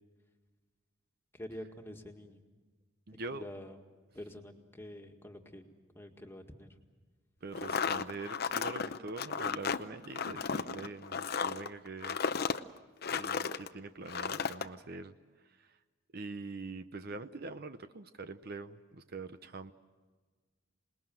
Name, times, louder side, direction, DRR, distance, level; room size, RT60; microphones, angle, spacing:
voice 1, 1.3-2.4 3.3-3.8 4.1-5.6 6.0-6.7, left 1 dB, 10° left, 3 dB, 1.9 m, -47 dB
voice 2, 3.1-3.4 7.4-12.2 13.1-15.1 16.1-19.7, right 3 dB, 50° right, 10 dB, 0.8 m, -44 dB
sound 1, 7.5-13.7 14.1-14.7, left 5 dB, 50° left, 0.7 m, -34 dB
27.5 x 20.0 x 7.7 m, 1.3 s
head